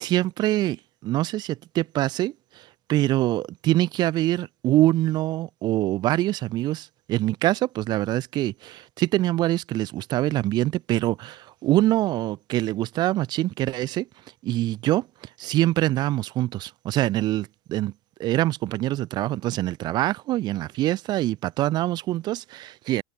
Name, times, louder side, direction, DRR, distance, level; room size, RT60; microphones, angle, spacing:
voice 1, 0.0-14.1 14.4-15.1 15.4-17.9 18.2-23.0, right 15 dB, 40° right, 2.9 m, -24 dB
supercardioid pair, 135°, 11 cm